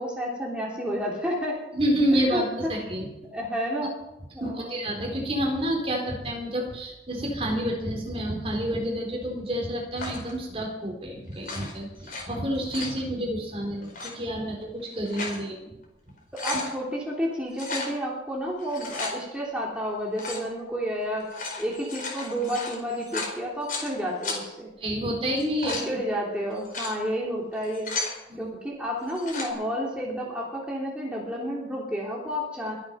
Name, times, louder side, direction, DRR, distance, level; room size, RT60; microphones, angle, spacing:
voice 1, 0.0-1.6 2.3-2.4 3.3-3.9 4.3-4.8 16.4-21.3 21.6-24.7 25.6-27.9 28.4-32.7, equal, 5° right, -4 dB, 3.2 m, -30 dB
voice 2, 1.7-3.1 4.4-15.7 24.8-26.0 28.3-28.5, equal, 30° right, 0 dB, 4.1 m, -29 dB
sound 1, 10.0-10.3 11.3-12.2 12.5-13.0 13.8-14.1 14.8-15.4 15.8-15.9 16.2-16.7 17.5-17.9 18.6-19.1 20.1-20.5 21.2-23.9 24.2-24.4 25.3-25.9 26.5-26.9 27.5-28.2 29.0-29.5, left 3 dB, 50° left, 4.8 m, -34 dB
23.5 x 8.8 x 5.8 m, 0.92 s
head